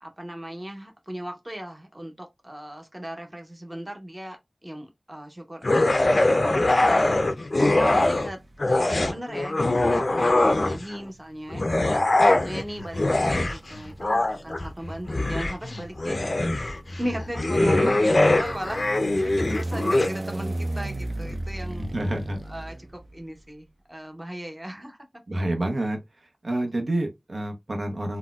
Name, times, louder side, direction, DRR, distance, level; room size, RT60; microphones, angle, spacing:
voice 1, 0.0-5.6 6.1-7.3 7.8-16.6 17.0-21.9 22.5-25.2, equal, 20° right, 0.8 m, -37 dB
sound 1, 5.6-8.3 8.6-11.0 11.5-20.1, left 2 dB, 55° left, 0.4 m, -22 dB
sound 2, 7.9-8.6 9.7-23.4, right 1 dB, 45° right, 0.4 m, -37 dB
voice 2, 17.6-18.0 21.8-22.4 25.3-26.0 26.4-28.2, right 1 dB, 75° right, 0.7 m, -28 dB
3.9 x 2.1 x 2.3 m
wide cardioid pair, 70°, 0 cm